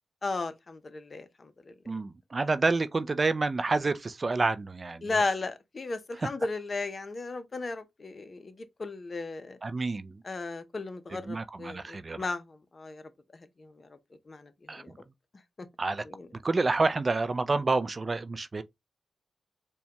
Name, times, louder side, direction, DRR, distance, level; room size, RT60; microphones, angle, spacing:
voice 1, 0.2-1.7 5.0-9.6 10.2-13.0 13.3-14.0 14.3-14.9 15.6-15.7 16.0-16.3, left 3 dB, 45° left, 0.7 m, -35 dB
voice 2, 1.9-5.2 9.6-10.2 11.3-12.2 14.7-14.8 15.8-16.0 16.4-18.6, right 3 dB, 40° right, 0.4 m, -28 dB
4.3 x 2.2 x 2.9 m
supercardioid pair, 50°, 0 cm